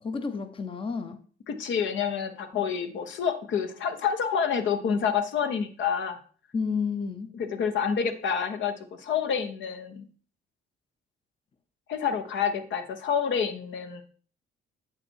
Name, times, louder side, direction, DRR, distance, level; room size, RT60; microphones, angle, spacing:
voice 1, 0.0-1.2 2.5-2.6 6.5-7.3, left 5 dB, 25° left, 9 dB, 0.7 m, -31 dB
voice 2, 1.5-6.2 7.3-10.1 11.9-14.0, left 7 dB, 70° left, 7 dB, 1.1 m, -28 dB
7.7 x 5.9 x 4.5 m, 0.42 s
cardioid pair, 90°, 20 cm